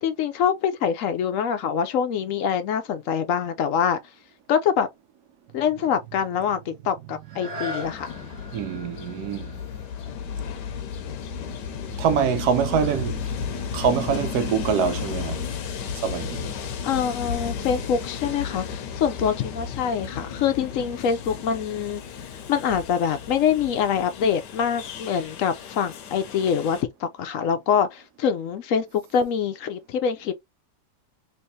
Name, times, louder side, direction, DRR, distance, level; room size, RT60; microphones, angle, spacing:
voice 1, 0.0-4.0 4.5-4.9 5.5-8.1 16.8-30.3, left 7 dB, 70° left, 0.8 m, -25 dB
sound 1, 7.2-12.9 13.4-13.5, left 1 dB, 25° right, 1.1 m, -41 dB
Train, 7.8-26.8, left 7 dB, 85° left, 1.3 m, -34 dB
voice 2, 8.5-9.6 12.0-13.3 13.7-15.5 16.0-16.5, right 7 dB, 75° right, 1.1 m, -24 dB
3.4 x 3.0 x 2.7 m
omnidirectional pair, 1.8 m